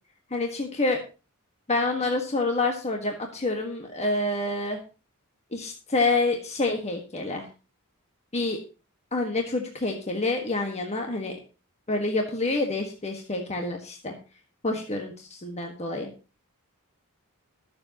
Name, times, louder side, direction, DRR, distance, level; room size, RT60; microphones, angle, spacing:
voice 1, 0.3-1.0 1.7-4.8 5.5-7.5 8.3-8.6 9.1-11.3 11.9-14.2 14.6-16.1, left 2 dB, 30° left, 2 dB, 1.6 m, -27 dB
21.5 x 7.3 x 3.0 m, 0.32 s
head